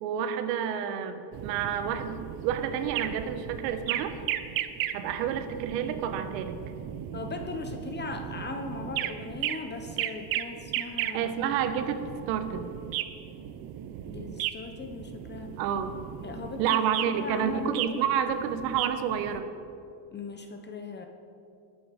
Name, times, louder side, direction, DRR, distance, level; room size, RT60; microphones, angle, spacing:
voice 1, 0.0-4.1 4.9-6.6 11.1-12.7 15.6-16.0 16.6-19.5, right 8 dB, 80° right, 8 dB, 1.3 m, -29 dB
sound 1, 1.3-19.4, right 11 dB, 45° right, 0.8 m, -36 dB
voice 2, 7.1-11.4 14.1-15.6 16.2-18.0 20.1-21.1, left 4 dB, 20° left, 5 dB, 0.8 m, -39 dB
20.5 x 7.9 x 5.2 m, 2.6 s
cardioid pair, 130°, 49 cm